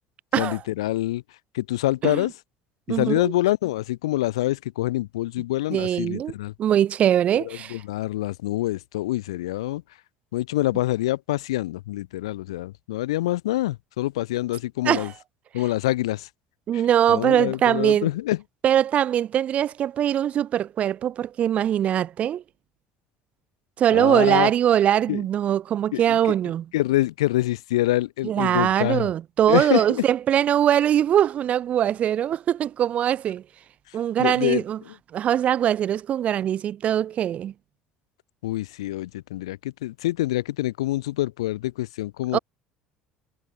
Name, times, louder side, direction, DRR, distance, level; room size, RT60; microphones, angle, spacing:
voice 1, 0.4-1.2 1.5-2.3 2.9-6.5 7.3-9.8 10.3-15.1 15.5-16.3 16.7-16.8 17.1-18.4 23.9-24.5 25.1-25.2 25.9-26.3 26.7-29.1 29.5-30.0 34.2-34.9 38.4-42.4, left 16 dB, 85° left, 6.6 m, -26 dB
voice 2, 2.9-3.3 5.7-6.3 6.6-7.8 14.8-15.1 16.7-18.1 18.6-22.4 23.8-26.7 28.2-33.4 33.9-34.8 35.1-37.5 42.3-42.4, right 10 dB, 50° right, 5.5 m, -22 dB
hypercardioid pair, 70°, 3 cm